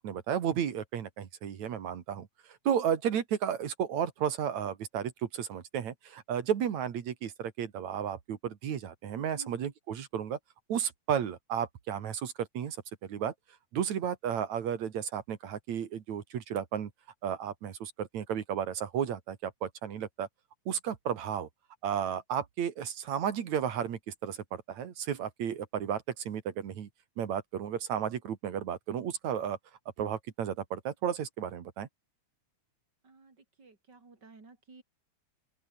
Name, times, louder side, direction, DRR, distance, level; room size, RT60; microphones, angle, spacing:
voice 1, 0.0-2.3 2.6-10.4 10.7-12.8 13.0-13.3 13.7-16.9 17.2-20.3 20.7-21.5 21.8-26.9 27.2-29.6 30.0-31.9, right 8 dB, 75° right, 3.2 m, -33 dB
voice 2, 33.0-34.8, right 3 dB, 35° right, 4.9 m, -54 dB
open air
omnidirectional pair, 3.3 m